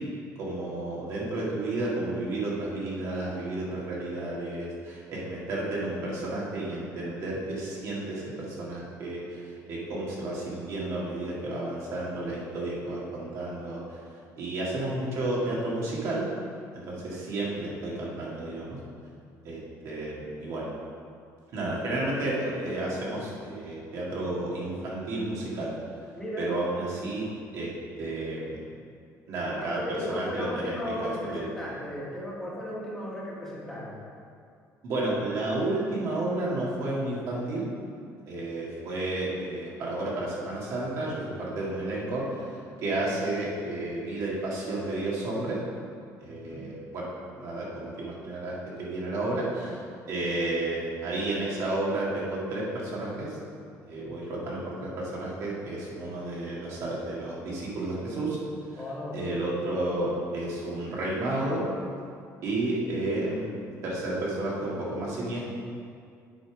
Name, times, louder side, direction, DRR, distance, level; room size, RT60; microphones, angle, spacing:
voice 1, 0.4-13.8 14.4-16.3 16.7-18.8 19.4-20.7 21.5-25.7 26.4-27.3 27.5-27.7 28.0-28.6 29.3-30.7 31.0-31.4 34.8-37.7 38.3-42.5 42.8-45.6 46.2-47.1 47.4-49.8 50.1-53.4 53.8-58.4 58.7-58.8 59.1-61.6 62.4-63.5 63.8-65.5, right 2 dB, 55° right, -5 dB, 2.1 m, -31 dB
voice 2, 29.6-34.0 46.2-46.7 53.9-54.2 58.7-59.4, left 1 dB, 5° left, -6 dB, 1.7 m, -36 dB
8.6 x 5.3 x 5.1 m, 2.3 s
cardioid pair, 160°, 6 cm